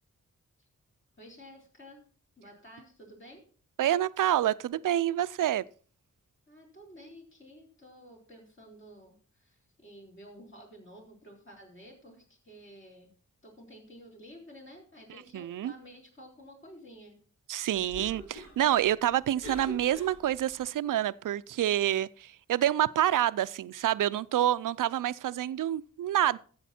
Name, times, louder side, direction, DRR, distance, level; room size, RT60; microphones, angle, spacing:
voice 1, 1.2-2.0 2.4-3.4 6.5-13.1 13.4-17.2, equal, 40° left, 4.1 m, -52 dB
voice 2, 3.8-5.6 15.3-15.7 17.5-26.4, right 12 dB, 80° right, 0.5 m, -27 dB
Cough, 17.7-20.6, equal, 80° left, 7.1 m, -46 dB
12.5 x 7.9 x 4.3 m
cardioid pair, 75°, 31 cm